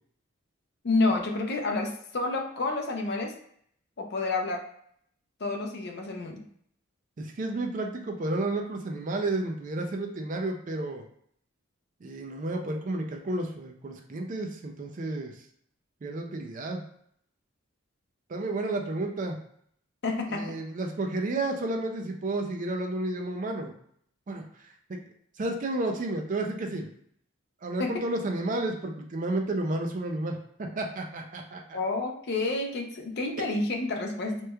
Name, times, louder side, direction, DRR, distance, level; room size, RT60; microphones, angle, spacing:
voice 1, 0.8-3.3 4.0-4.6 5.4-6.4 20.0-20.4 27.8-27.9 31.7-34.4, left 3 dB, 50° left, 3 dB, 0.5 m, -29 dB
voice 2, 7.2-11.0 12.0-15.4 16.0-16.8 18.3-19.4 20.3-23.7 24.3-25.0 25.4-26.9 27.6-31.8, right 2 dB, 40° right, 2 dB, 0.4 m, -31 dB
3.2 x 3.0 x 2.3 m, 0.65 s
head